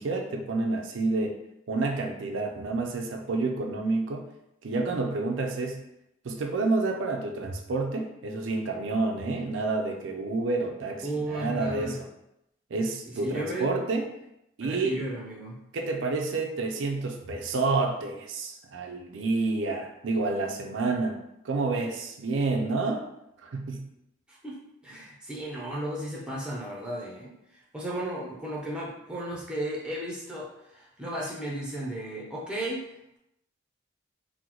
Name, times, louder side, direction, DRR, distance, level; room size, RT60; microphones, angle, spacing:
voice 1, 0.0-1.4 1.7-4.3 4.6-5.8 6.2-12.1 12.7-14.1 14.6-15.0 15.7-23.1 23.4-23.9, right 3 dB, 75° right, 3 dB, 0.4 m, -29 dB
voice 2, 11.0-12.0 13.1-13.7 14.6-15.6 24.3-24.6 24.8-27.3 27.7-32.8, right 1 dB, 5° right, -4 dB, 0.5 m, -34 dB
3.7 x 2.0 x 3.0 m, 0.82 s
head